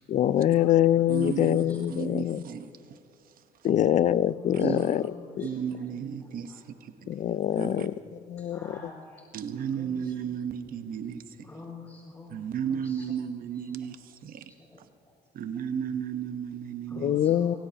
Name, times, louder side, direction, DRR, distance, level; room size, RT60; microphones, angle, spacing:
voice 1, 0.1-2.4 3.6-5.0 5.4-5.5 7.1-7.9 8.3-8.8 17.0-17.5, left 11 dB, 45° left, 0.4 m, -24 dB
voice 2, 1.1-3.0 3.2-3.7 4.5-5.0 5.4-7.1 7.6-7.9 9.3-11.5 12.3-14.4 15.3-17.3, right 8 dB, 60° right, 1.1 m, -34 dB
voice 3, 4.3-5.5 6.5-6.6 8.4-9.2 9.8-9.9 11.4-12.4 12.7-13.1 14.5-14.8 16.9-17.6, left 2 dB, 20° left, 5.0 m, -47 dB
26.0 x 17.0 x 2.9 m
cardioid pair, 110°, 17 cm